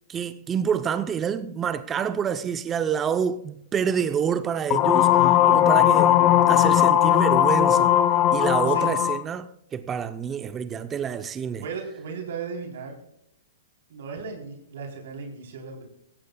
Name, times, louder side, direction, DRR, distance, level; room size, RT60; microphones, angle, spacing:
voice 1, 0.1-6.1 6.5-7.9 8.3-11.7, right 7 dB, 20° right, 0.6 m, -27 dB
sound 1, 4.7-9.2, left 12 dB, 30° left, 0.9 m, -18 dB
voice 2, 11.6-12.9 13.9-15.9, right 5 dB, 70° right, 3.6 m, -36 dB
17.5 x 15.0 x 2.3 m
hypercardioid pair, 140°, 0 cm